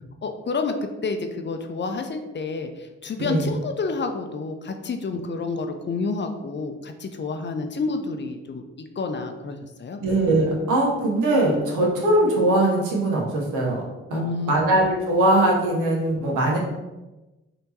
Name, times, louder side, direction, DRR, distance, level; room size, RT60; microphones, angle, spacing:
voice 1, 0.2-10.0 14.1-14.5, left 4 dB, 35° left, 6 dB, 0.5 m, -29 dB
voice 2, 10.0-13.8 14.1-16.6, right 1 dB, 80° right, -2 dB, 0.9 m, -21 dB
3.5 x 2.9 x 2.8 m, 1.1 s
hypercardioid pair, 40°, 31 cm